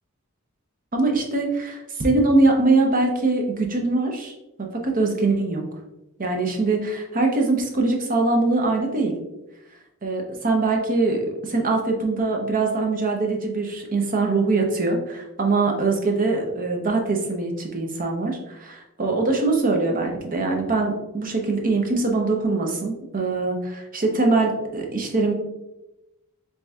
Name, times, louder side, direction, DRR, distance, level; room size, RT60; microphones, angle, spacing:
voice 1, 0.9-4.3 4.6-5.6 6.2-9.2 10.0-25.3, right 3 dB, 40° right, 2 dB, 0.8 m, -22 dB
7.4 x 2.8 x 2.3 m, 0.94 s
head